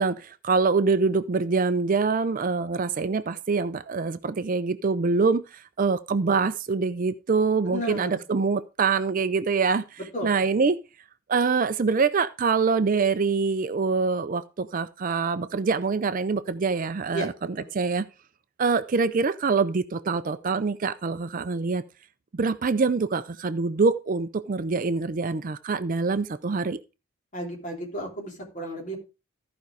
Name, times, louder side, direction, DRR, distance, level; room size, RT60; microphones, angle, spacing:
voice 1, 0.0-10.8 11.3-18.1 18.6-21.8 22.3-26.8, right 4 dB, 40° right, 0.4 m, -25 dB
voice 2, 7.6-8.2 10.1-10.3 17.1-17.3 17.6-17.7 27.3-29.0, equal, 35° left, 3.2 m, -33 dB
14.0 x 5.2 x 4.8 m
head